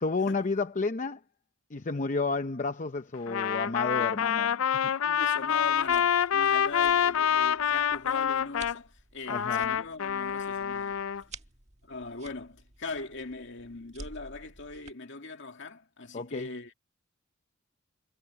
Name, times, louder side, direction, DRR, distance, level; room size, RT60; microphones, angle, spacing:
voice 1, 0.0-1.2 1.7-4.6 9.3-9.7 16.1-16.5, left 3 dB, 40° left, 0.7 m, -31 dB
Trumpet, 3.3-8.8 9.3-11.2, left 8 dB, 80° left, 0.5 m, -27 dB
voice 2, 5.0-11.0 11.8-16.7, left 3 dB, 60° left, 2.4 m, -41 dB
sound 1, 5.6-14.9, right 3 dB, 35° right, 1.7 m, -52 dB
head